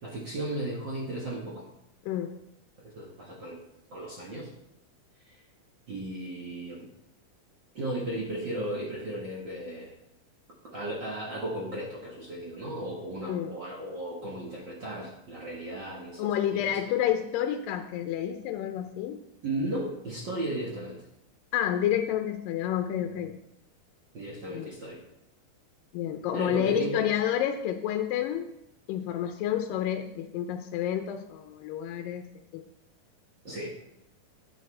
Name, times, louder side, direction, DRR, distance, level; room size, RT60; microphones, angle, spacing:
voice 1, 0.0-1.7 2.8-4.5 5.3-5.4 5.9-6.9 7.7-10.0 10.6-16.8 19.4-21.0 24.1-25.0 26.3-27.0 33.4-33.7, right 1 dB, 50° right, -4 dB, 1.5 m, -35 dB
voice 2, 16.2-19.2 21.5-23.3 24.5-24.7 25.9-28.5 28.9-32.3 32.5-32.6, left 10 dB, 85° left, 6 dB, 2.3 m, -29 dB
9.5 x 9.2 x 3.2 m, 0.83 s
omnidirectional pair, 3.9 m